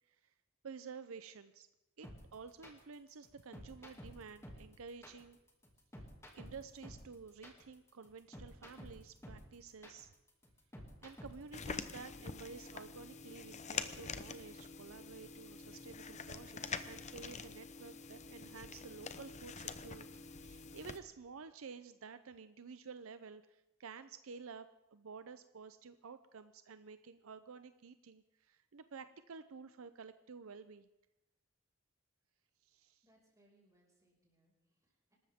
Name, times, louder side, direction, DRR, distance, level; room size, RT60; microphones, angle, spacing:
voice 1, 0.6-1.7 2.0-5.4 6.3-10.1 11.0-30.9 32.6-33.0, right 5 dB, 70° right, 11 dB, 0.6 m, -52 dB
sound 1, 2.0-11.6, equal, 15° left, 2.4 m, -52 dB
sound 2, 11.5-21.0, left 5 dB, 35° left, 0.8 m, -46 dB
voice 2, 33.0-35.2, right 1 dB, 15° right, -3 dB, 5.6 m, -72 dB
26.0 x 13.5 x 3.6 m, 0.92 s
head